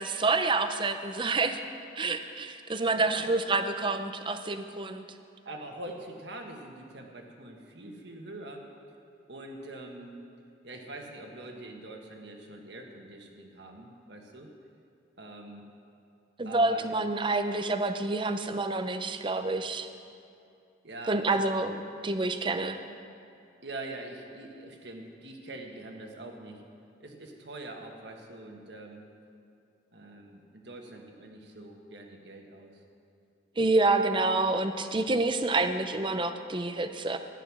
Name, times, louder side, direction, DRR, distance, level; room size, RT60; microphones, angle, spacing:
voice 1, 0.0-1.6 2.0-5.0 16.4-19.9 21.1-21.8 22.0-22.8 33.6-37.2, right 3 dB, 25° right, 8 dB, 0.6 m, -28 dB
voice 2, 5.4-8.7 9.3-10.2 10.6-14.5 15.2-15.7 16.4-17.0 20.8-21.4 23.6-26.6 27.0-29.1 29.9-32.8, right 2 dB, 60° right, 2 dB, 1.5 m, -44 dB
13.5 x 10.5 x 6.1 m, 2.5 s
head